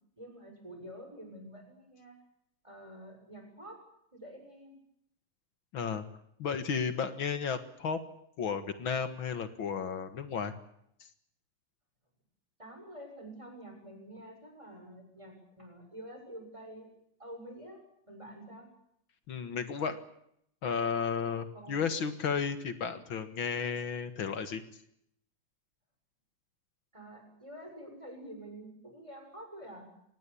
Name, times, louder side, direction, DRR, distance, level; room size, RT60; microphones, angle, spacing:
voice 1, 0.2-2.2 2.6-3.8 4.1-4.8 12.6-16.9 17.2-17.8 18.1-18.7 21.5-21.9 26.9-29.9, right 1 dB, 15° right, 3 dB, 7.2 m, -48 dB
voice 2, 5.7-6.0 6.4-8.0 8.4-10.5 19.3-20.0 20.6-24.6, left 6 dB, 75° left, 9 dB, 2.3 m, -33 dB
24.5 x 19.5 x 8.5 m, 0.74 s
omnidirectional pair, 2.2 m